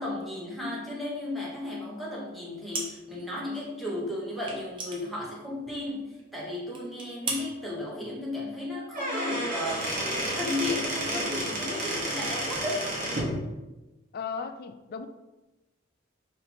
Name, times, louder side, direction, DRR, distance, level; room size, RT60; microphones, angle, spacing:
voice 1, 0.0-9.9 10.3-12.8, left 2 dB, ahead, -5 dB, 0.9 m, -34 dB
sound 1, 2.7-3.3 3.5-3.6 4.4-5.9 6.2-6.3 6.7-7.5, right 3 dB, 25° right, 0.6 m, -36 dB
Squeak / Wood, 8.8-13.3, right 1 dB, 45° right, 1.0 m, -31 dB
voice 2, 14.1-15.1, left 5 dB, 50° left, 10 dB, 0.3 m, -36 dB
4.2 x 2.6 x 4.2 m, 1.1 s
head